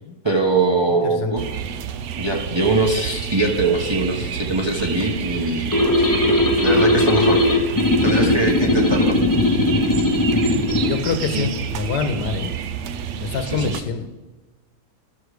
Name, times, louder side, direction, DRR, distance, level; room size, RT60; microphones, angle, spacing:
voice 1, 0.2-1.5 2.2-6.0 6.6-7.4 8.0-9.2 11.3-11.5 13.5-13.8, right 2 dB, 20° right, 0 dB, 0.9 m, -22 dB
voice 2, 0.9-1.3 10.9-12.5 13.2-14.1, left 5 dB, 85° left, 8 dB, 1.5 m, -26 dB
sound 1, 1.4-13.8, right 8 dB, 70° right, 0.7 m, -29 dB
sound 2, 5.7-10.9, left 1 dB, 15° left, 0.6 m, -18 dB
12.0 x 6.5 x 4.9 m, 1.2 s
omnidirectional pair, 1.7 m